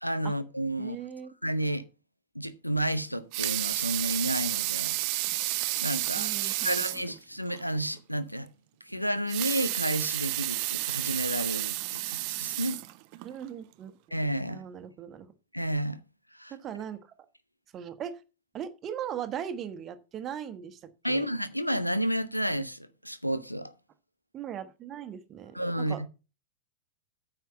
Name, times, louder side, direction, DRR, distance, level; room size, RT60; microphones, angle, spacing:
voice 1, 0.0-1.0 1.4-1.8 2.3-5.0 5.8-8.5 8.8-12.8 14.1-14.6 15.5-16.0 16.3-16.5 21.0-23.7 25.5-26.1, right 1 dB, 90° left, 0.8 m, -31 dB
voice 2, 0.8-1.3 6.1-7.1 13.2-13.9 14.5-15.3 16.5-17.1 17.7-18.2 18.5-21.3 24.3-26.1, right 9 dB, 30° right, 1.3 m, -39 dB
Water tap faucet / Sink (filling or washing) / Liquid, 3.1-7.1 7.5-7.6 8.0-8.1 9.2-13.3 13.9-14.0, right 19 dB, 45° right, 0.7 m, -31 dB
9.4 x 5.7 x 6.7 m
figure-of-eight pair, 90°, 0 cm